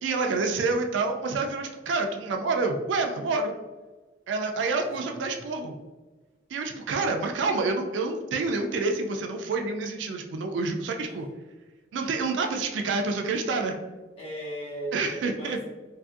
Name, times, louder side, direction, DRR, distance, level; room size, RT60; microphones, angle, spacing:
voice 1, 0.0-3.5 4.3-5.8 6.5-11.3 11.9-13.8 14.9-15.6, right 3 dB, 70° right, 4 dB, 0.3 m, -28 dB
voice 2, 4.8-5.4 6.7-6.8 11.0-11.2 14.2-15.6, right 1 dB, 35° left, -6 dB, 0.9 m, -38 dB
2.6 x 2.5 x 2.4 m, 1.2 s
head